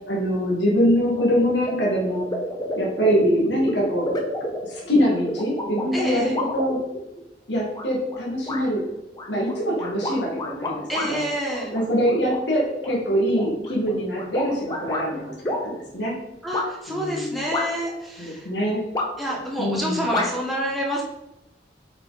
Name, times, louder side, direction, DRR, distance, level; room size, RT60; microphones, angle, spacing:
voice 1, 0.1-2.3 2.8-4.1 4.6-6.8 7.5-8.8 9.3-11.2 11.7-16.1 16.9-17.4 18.2-18.8 19.6-20.1, equal, 75° left, -3 dB, 2.1 m, -23 dB
sound 1, 1.6-1.7 2.1-7.2 7.7-8.2 8.5-8.6 9.1-11.1 11.5-12.4 12.8-15.1 15.4-15.6 16.5-16.7 17.5-18.0 18.9-19.4 20.1-20.3, left 1 dB, 20° left, 1.0 m, -29 dB
voice 2, 5.9-6.4 10.9-11.7 16.4-18.5 19.2-21.0, equal, ahead, -4 dB, 1.6 m, -28 dB
8.1 x 5.0 x 4.2 m, 0.91 s
head